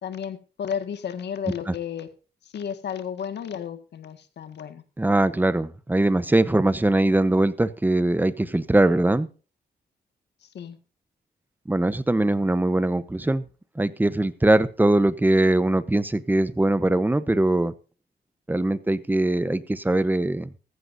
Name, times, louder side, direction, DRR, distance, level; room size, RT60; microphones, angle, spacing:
voice 1, 0.0-2.1 2.5-4.8 10.5-10.8, left 8 dB, 85° left, 10 dB, 1.8 m, -32 dB
voice 2, 5.0-9.3 11.7-13.4 13.8-17.7 18.5-20.5, right 1 dB, 10° right, 15 dB, 0.9 m, -21 dB
15.0 x 14.5 x 2.7 m, 0.34 s
cardioid pair, 110°, 17 cm